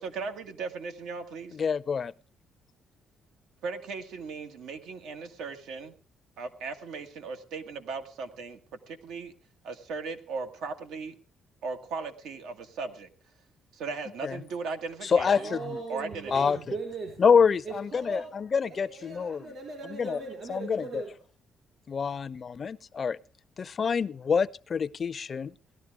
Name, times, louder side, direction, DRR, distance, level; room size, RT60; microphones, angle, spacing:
voice 1, 0.0-1.6 3.6-5.9 6.4-8.6 8.9-9.3 9.6-11.1 11.6-13.1 13.7-15.5 15.9-16.5, right 4 dB, 85° right, 1.7 m, -37 dB
voice 2, 1.5-2.1 14.2-14.4 15.0-15.6 16.3-16.6 17.2-19.5 19.9-20.2 20.5-21.0 21.9-23.2 23.6-25.5, left 6 dB, 45° left, 0.5 m, -26 dB
voice 3, 15.3-17.3 17.6-18.4 18.7-21.2, right 3 dB, 55° right, 4.3 m, -39 dB
18.0 x 12.5 x 3.5 m
cardioid pair, 90°, 0 cm